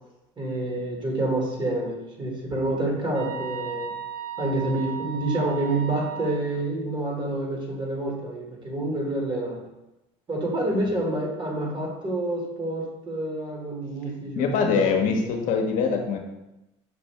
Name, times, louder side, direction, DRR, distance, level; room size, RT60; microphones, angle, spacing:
voice 1, 0.4-3.9 4.4-9.6 10.3-15.1, right 2 dB, 30° right, -1 dB, 1.5 m, -28 dB
sound 1, 3.1-6.4, right 7 dB, 90° right, 0.5 m, -36 dB
voice 2, 14.4-16.2, left 5 dB, 60° left, 2 dB, 0.7 m, -23 dB
5.9 x 2.6 x 3.2 m, 0.93 s
supercardioid pair, 85°, 15 cm